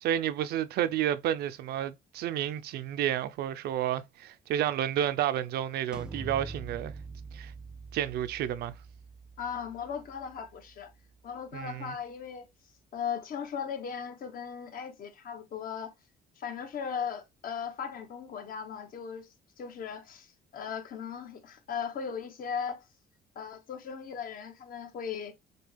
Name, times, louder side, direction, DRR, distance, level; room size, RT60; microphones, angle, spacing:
voice 1, 0.0-6.9 7.3-7.5 7.9-8.7 11.5-12.0, right 11 dB, 70° right, 0.6 m, -31 dB
sound 1, 5.9-11.6, right 3 dB, 5° right, 0.6 m, -45 dB
voice 2, 9.4-10.9 11.2-12.5 12.9-15.9 16.4-19.3 19.6-22.8 23.3-25.3, left 7 dB, 55° left, 1.3 m, -37 dB
6.6 x 2.3 x 3.3 m
cardioid pair, 110°, 17 cm